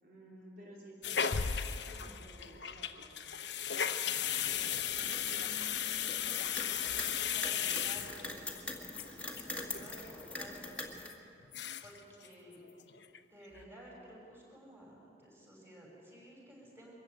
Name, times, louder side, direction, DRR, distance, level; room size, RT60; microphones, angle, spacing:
voice 1, 0.0-3.2, equal, 50° right, -4 dB, 3.5 m, -54 dB
sound 1, 1.0-8.6 9.0-9.1 9.3-9.4 9.7-10.1 10.4-10.5 11.0-11.1 11.4-12.0 12.2-12.3 12.7-13.2 13.5-13.6, left 9 dB, 85° left, 1.0 m, -36 dB
Bass drum, 1.3-2.7, left 3 dB, 60° left, 0.6 m, -38 dB
sound 2, 4.4-11.1, left 2 dB, 10° left, 1.9 m, -44 dB
voice 2, 4.5-8.3 8.8-11.0 11.8-12.6 13.3-16.9, equal, 15° right, -3 dB, 6.2 m, -54 dB
23.5 x 14.5 x 9.2 m, 2.7 s
head